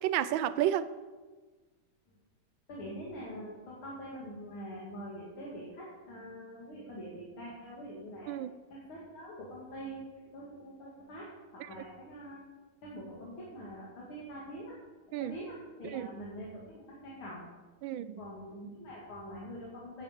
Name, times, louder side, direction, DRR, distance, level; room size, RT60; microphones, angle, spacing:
voice 1, 0.0-0.9 8.3-8.5 11.6-11.7 15.1-15.3 15.9-16.1 17.8-18.2, right 11 dB, 75° right, 14 dB, 1.3 m, -31 dB
voice 2, 2.7-8.4 8.7-10.1 10.3-12.4 12.8-14.7 15.2-17.5 18.2-20.0, equal, 75° left, -5 dB, 3.0 m, -44 dB
9.2 x 8.8 x 7.4 m, 1.3 s
omnidirectional pair, 2.3 m